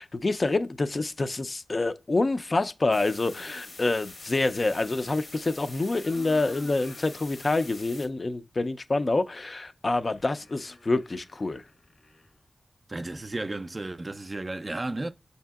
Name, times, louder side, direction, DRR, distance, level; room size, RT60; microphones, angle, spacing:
voice 1, 0.0-11.6, left 2 dB, 45° left, 0.4 m, -27 dB
sound 1, 2.9-4.1 5.5-7.3 7.8-7.9 9.8-12.4, left 2 dB, 85° left, 1.2 m, -50 dB
sound 2, 2.9-8.1, left 3 dB, 70° left, 0.9 m, -45 dB
voice 2, 12.9-15.1, right 2 dB, 35° right, 0.3 m, -33 dB
6.5 x 2.7 x 2.3 m
wide cardioid pair, 65°, 0 cm